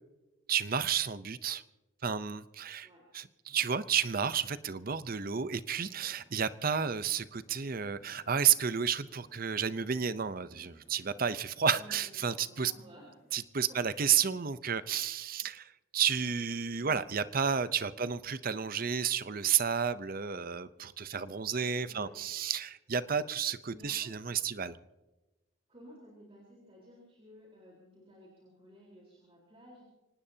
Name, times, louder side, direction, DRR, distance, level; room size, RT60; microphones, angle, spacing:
voice 1, 0.5-1.6 2.0-2.9 3.1-12.7 13.3-24.8, right 7 dB, 45° right, 14 dB, 0.7 m, -31 dB
sound 1, 3.5-4.5 4.8-4.9 5.3-5.4 5.7-13.4, equal, 50° left, 3.7 m, -64 dB
voice 2, 11.7-13.1 13.7-13.9 18.0-18.1 21.8-22.2 23.6-24.1 25.7-29.8, equal, 30° right, -4 dB, 4.1 m, -55 dB
25.0 x 19.0 x 2.8 m, 1.1 s
head